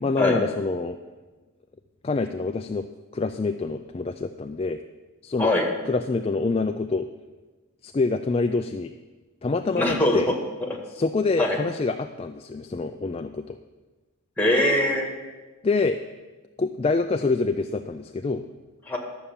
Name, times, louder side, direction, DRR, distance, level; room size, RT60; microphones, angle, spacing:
voice 1, 0.0-1.0 2.0-2.9 3.1-4.8 5.2-5.5 5.9-7.1 7.8-8.9 9.4-10.3 10.9-13.6 15.6-16.0 16.6-18.5, left 3 dB, 25° left, 7 dB, 0.3 m, -26 dB
voice 2, 9.8-10.2 11.4-11.6 14.4-15.1 18.9-19.0, left 1 dB, 10° left, 1 dB, 1.6 m, -21 dB
11.5 x 7.0 x 7.1 m, 1.3 s
head